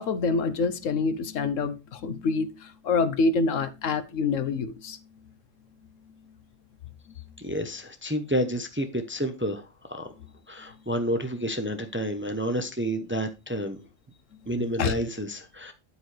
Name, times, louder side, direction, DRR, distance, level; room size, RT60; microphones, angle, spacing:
voice 1, 0.0-5.0 14.8-14.9, left 4 dB, 75° left, 1.2 m, -26 dB
voice 2, 7.4-10.1 10.5-13.8 14.5-15.7, equal, 10° right, 0.7 m, -30 dB
10.0 x 8.1 x 3.3 m
omnidirectional pair, 1.4 m